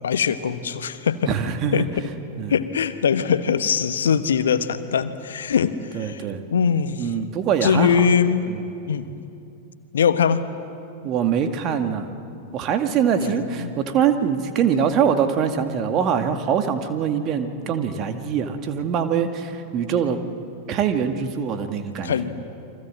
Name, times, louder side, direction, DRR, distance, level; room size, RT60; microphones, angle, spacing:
voice 1, 0.0-1.3 1.7-1.9 2.5-6.2 6.5-7.1 7.6-8.5 8.9-9.1 9.9-10.5 13.2-13.7 22.0-22.4, left 7 dB, 65° left, 12 dB, 1.2 m, -22 dB
voice 2, 1.3-1.9 2.4-2.6 5.9-6.4 7.0-8.1 8.5-8.6 11.0-12.1 12.5-20.2 20.7-22.2, right 7 dB, 35° right, 7 dB, 2.1 m, -23 dB
29.5 x 24.5 x 7.7 m, 2.7 s
figure-of-eight pair, 90°, 0 cm